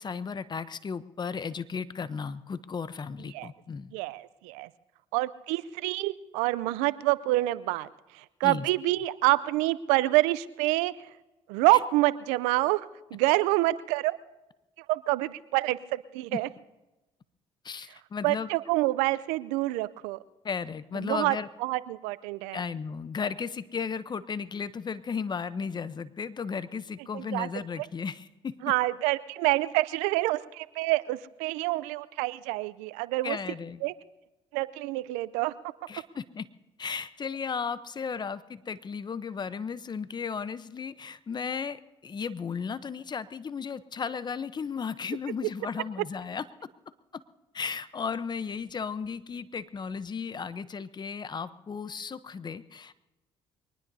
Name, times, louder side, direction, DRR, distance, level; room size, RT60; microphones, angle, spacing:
voice 1, 0.0-3.9 8.4-8.7 16.3-16.4 17.6-18.5 20.4-21.5 22.5-28.6 33.2-33.8 35.9-36.5 36.8-46.5 47.1-47.2 47.5-52.9, left 6 dB, 35° left, 15 dB, 0.8 m, -35 dB
voice 2, 3.9-4.7 5.1-7.9 8.4-10.9 11.5-12.9 13.1-14.1 14.9-16.5 18.2-20.2 21.0-21.4 21.6-22.6 27.1-27.5 28.6-33.4 33.8-33.9 34.5-35.5, right 19 dB, 85° right, 18 dB, 0.5 m, -27 dB
23.0 x 19.5 x 2.7 m, 1.0 s
supercardioid pair, 60°, 12 cm